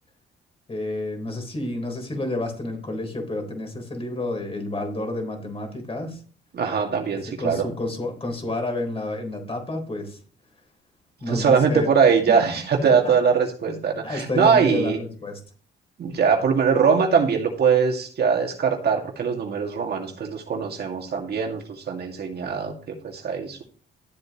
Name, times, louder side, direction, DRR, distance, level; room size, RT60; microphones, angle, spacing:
voice 1, 0.7-6.2 7.4-10.2 11.2-11.9 12.8-13.1 13.7-13.8 14.0-15.4, left 2 dB, 30° left, 3 dB, 3.9 m, -30 dB
voice 2, 6.5-7.7 11.3-15.0 16.0-23.6, right 6 dB, 55° right, 2 dB, 2.1 m, -22 dB
12.5 x 7.9 x 3.0 m, 0.42 s
cardioid pair, 90°, 20 cm